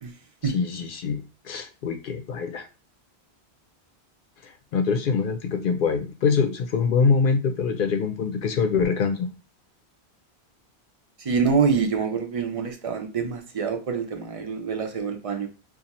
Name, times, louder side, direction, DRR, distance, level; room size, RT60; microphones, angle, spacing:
voice 1, 0.5-2.7 4.7-9.3, left 5 dB, 60° left, 5 dB, 0.6 m, -24 dB
voice 2, 11.2-15.5, right 5 dB, 40° right, 5 dB, 0.6 m, -26 dB
2.7 x 2.4 x 4.1 m, 0.31 s
omnidirectional pair, 1.1 m